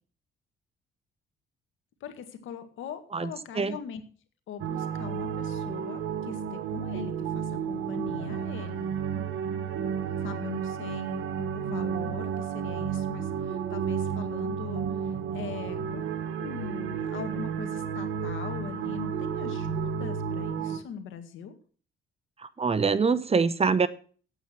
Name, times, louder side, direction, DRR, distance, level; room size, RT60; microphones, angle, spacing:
voice 1, 2.0-4.0 4.5-9.0 10.2-21.5, left 8 dB, 80° left, 1.9 m, -41 dB
voice 2, 3.1-3.8 22.4-23.9, right 5 dB, 30° right, 0.9 m, -25 dB
sound 1, 4.6-20.8, right 7 dB, 85° right, 1.3 m, -32 dB
9.0 x 8.2 x 7.6 m
cardioid pair, 90°, 20 cm